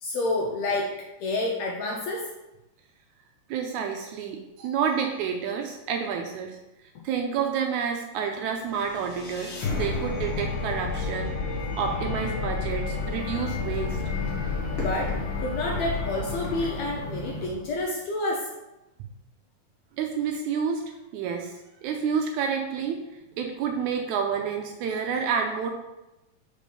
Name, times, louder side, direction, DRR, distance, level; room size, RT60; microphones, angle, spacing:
voice 1, 0.0-2.3 14.7-18.6, left 2 dB, 75° left, -1 dB, 1.7 m, -29 dB
voice 2, 3.5-6.6 7.0-11.3 11.8-14.0 20.0-23.0 23.4-25.7, right 6 dB, 80° right, 3 dB, 1.8 m, -29 dB
sound 1, 8.6-17.7, left 4 dB, 55° left, 1.4 m, -31 dB
sound 2, 12.8-17.4, equal, 30° left, 1.1 m, -38 dB
5.3 x 5.1 x 5.3 m, 0.99 s
omnidirectional pair, 3.8 m